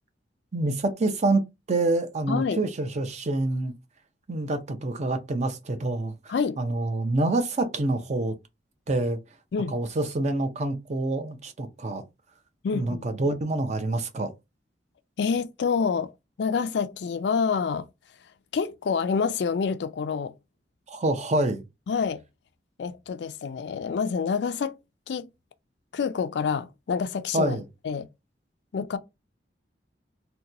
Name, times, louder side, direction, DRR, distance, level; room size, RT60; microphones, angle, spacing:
voice 1, 0.5-3.7 4.3-8.3 8.9-9.2 9.7-12.0 12.7-14.3 20.9-21.6 27.3-27.6, right 2 dB, 40° right, 0.5 m, -27 dB
voice 2, 2.3-2.6 6.3-6.6 9.5-9.7 12.6-13.1 15.2-16.1 16.4-17.9 18.5-20.3 21.9-22.2 22.8-24.7 25.1-25.3 25.9-28.1 28.7-29.0, left 5 dB, 65° left, 0.4 m, -27 dB
2.9 x 2.2 x 3.7 m
head